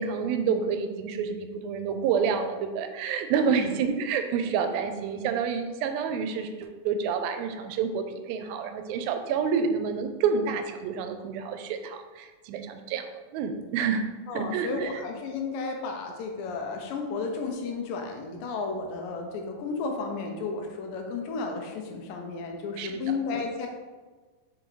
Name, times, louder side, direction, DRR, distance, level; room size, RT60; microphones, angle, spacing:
voice 1, 0.0-14.1 14.3-15.0 22.8-23.0, right 6 dB, 85° right, 7 dB, 2.3 m, -28 dB
voice 2, 14.3-23.7, left 4 dB, 80° left, 3 dB, 2.2 m, -33 dB
6.1 x 5.2 x 3.1 m, 1.3 s
omnidirectional pair, 4.2 m